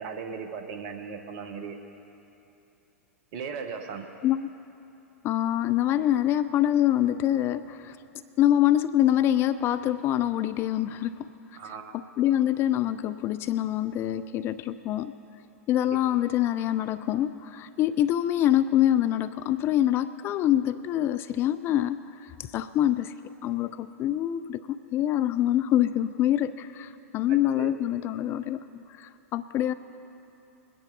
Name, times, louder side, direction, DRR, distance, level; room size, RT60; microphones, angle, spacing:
voice 1, 0.0-1.8 3.3-4.1 11.5-12.0 15.8-16.0 27.3-27.7, right 6 dB, 45° right, 6 dB, 1.3 m, -37 dB
voice 2, 5.2-8.0 8.4-11.3 11.9-15.1 15.7-23.1 23.4-29.7, left 12 dB, 30° left, 13 dB, 0.3 m, -25 dB
21.5 x 10.0 x 4.1 m, 2.9 s
figure-of-eight pair, 95°, 8 cm